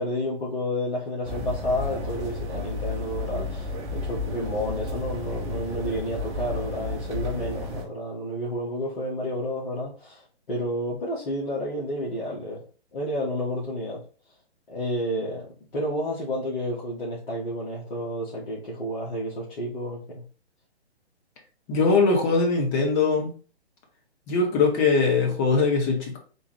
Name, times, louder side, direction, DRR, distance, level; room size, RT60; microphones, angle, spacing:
voice 1, 0.0-12.6 12.9-14.0 14.7-20.2, equal, 50° left, 1.6 m, -30 dB
sound 1, 1.2-7.8, left 3 dB, 15° right, 0.9 m, -32 dB
voice 2, 21.7-23.3 24.3-26.2, left 4 dB, 15° left, 0.6 m, -21 dB
3.9 x 2.4 x 4.7 m
hypercardioid pair, 140°, 34 cm